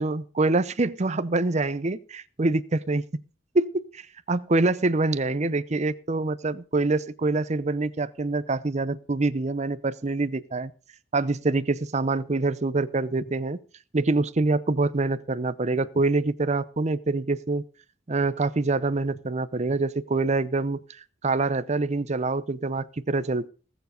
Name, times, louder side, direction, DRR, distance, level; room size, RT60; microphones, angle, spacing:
voice 1, 0.0-3.0 3.5-10.7 11.1-13.6 13.9-17.6 18.1-23.5, right 3 dB, 35° right, 15 dB, 0.6 m, -25 dB
19.5 x 7.2 x 5.2 m, 0.36 s
head